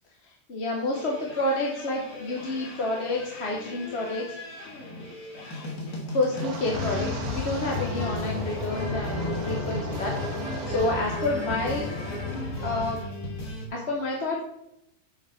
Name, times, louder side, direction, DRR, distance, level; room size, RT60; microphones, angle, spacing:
voice 1, 0.2-4.3 6.1-11.9 12.6-13.0 13.7-14.4, left 2 dB, 45° left, -1 dB, 1.3 m, -29 dB
sound 1, 0.9-13.7, left 2 dB, 80° left, 2.3 m, -37 dB
Wind, 6.3-11.2 11.5-11.9 12.3-12.6, right 4 dB, 80° right, 1.5 m, -38 dB
sound 2, 6.7-13.0, left 3 dB, 25° left, 2.0 m, -34 dB
7.4 x 5.2 x 5.7 m, 0.81 s
omnidirectional pair, 1.6 m